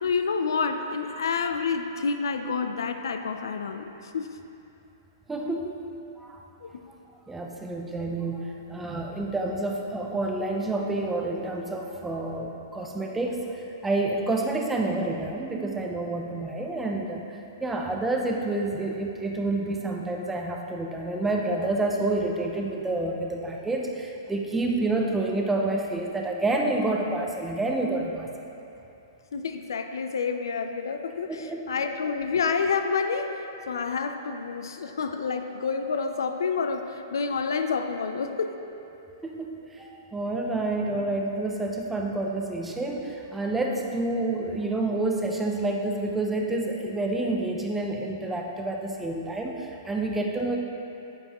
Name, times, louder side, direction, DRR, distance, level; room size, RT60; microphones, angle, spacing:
voice 1, 0.0-4.4 6.6-6.8 29.3-38.5, left 5 dB, 90° left, 7 dB, 0.5 m, -29 dB
voice 2, 5.3-5.8 6.2-6.4 7.3-28.3 31.3-31.6 39.2-50.6, right 2 dB, 5° right, 0 dB, 0.6 m, -29 dB
9.8 x 7.2 x 3.0 m, 2.9 s
hypercardioid pair, 155°, 2 cm